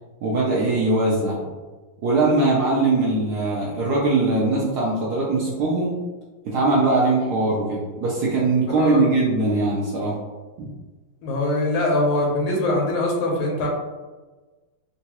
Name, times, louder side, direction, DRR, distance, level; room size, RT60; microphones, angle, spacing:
voice 1, 0.2-1.5 2.0-6.0 6.4-10.2 10.6-10.7, right 2 dB, 75° right, -4 dB, 0.9 m, -21 dB
voice 2, 8.7-9.1 11.2-13.7, left 2 dB, 85° left, -1 dB, 1.6 m, -22 dB
3.8 x 2.3 x 2.8 m, 1.3 s
omnidirectional pair, 2.3 m